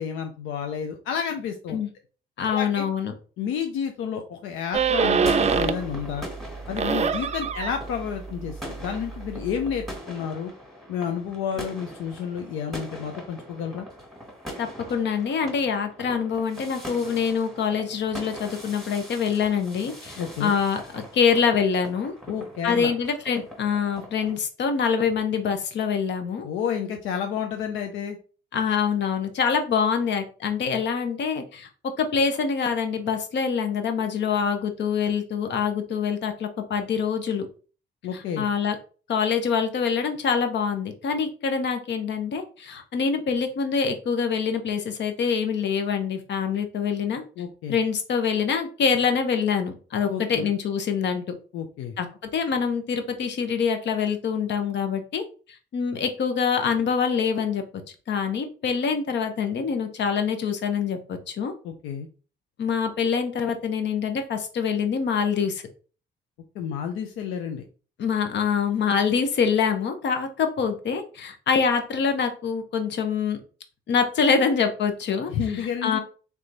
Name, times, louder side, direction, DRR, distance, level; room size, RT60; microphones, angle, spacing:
voice 1, 0.0-1.8 2.5-2.9 3.4-6.3 6.7-10.5 10.9-13.9 20.2-20.5 22.3-22.9 26.4-28.2 38.0-38.5 47.4-47.8 50.1-50.5 51.5-52.0 61.6-62.1 66.5-67.7 75.3-76.0, left 7 dB, 85° left, 4 dB, 0.5 m, -30 dB
voice 2, 2.4-3.1 14.6-22.1 22.6-26.5 28.5-31.7 32.0-37.5 38.1-38.8 39.1-47.2 47.7-51.2 52.0-52.1 52.3-55.2 55.7-57.6 58.1-61.5 62.6-65.6 68.0-73.4 73.9-75.3 75.8-76.0, left 6 dB, 65° left, 7 dB, 0.9 m, -25 dB
sound 1, 4.7-6.0 6.3-10.0, right 6 dB, 35° right, 0.4 m, -26 dB
sound 2, 5.0-24.4, equal, ahead, 1.6 m, -41 dB
3.4 x 3.2 x 3.9 m, 0.38 s
cardioid pair, 90°, 20 cm